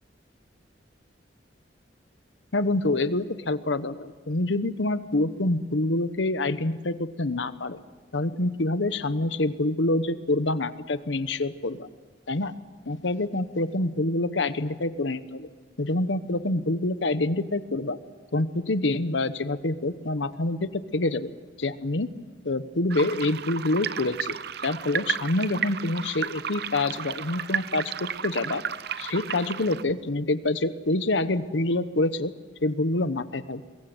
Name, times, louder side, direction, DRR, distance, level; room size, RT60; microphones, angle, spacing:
voice 1, 2.5-7.8 8.1-11.9 12.3-12.5 12.9-15.5 15.8-18.0 18.3-21.3 21.6-22.1 22.4-24.4 24.6-28.6 29.0-32.3 32.6-33.6, left 2 dB, 80° left, 12 dB, 1.1 m, -26 dB
sound 1, 22.9-29.8, right 8 dB, 60° right, 0.7 m, -33 dB
24.0 x 22.0 x 8.0 m, 1.5 s
head